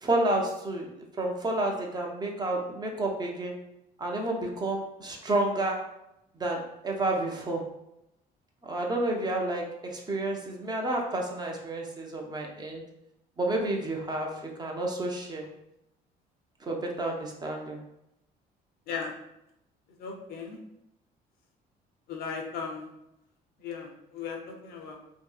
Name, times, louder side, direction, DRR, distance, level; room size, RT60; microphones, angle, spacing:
voice 1, 0.0-3.5 4.0-5.8 6.4-7.6 8.6-12.8 13.4-14.3 14.6-15.4 16.6-17.8, right 2 dB, 25° right, 0 dB, 0.5 m, -30 dB
voice 2, 20.0-20.6 22.1-22.9 23.6-25.0, left 5 dB, 65° left, 2 dB, 0.6 m, -37 dB
2.6 x 2.6 x 2.3 m, 0.85 s
cardioid pair, 110°, 17 cm